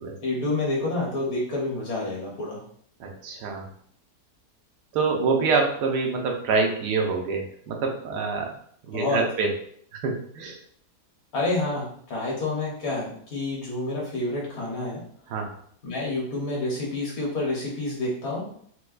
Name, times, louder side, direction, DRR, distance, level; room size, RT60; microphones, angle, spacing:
voice 1, 0.2-2.6 8.9-9.3 11.3-15.0 15.8-18.4, left 2 dB, 60° left, -4 dB, 1.5 m, -28 dB
voice 2, 3.0-3.6 4.9-8.5 8.9-9.5 9.9-10.5 15.3-15.5, right 4 dB, 85° right, 2 dB, 1.3 m, -26 dB
4.3 x 2.2 x 2.4 m, 0.62 s
omnidirectional pair, 1.7 m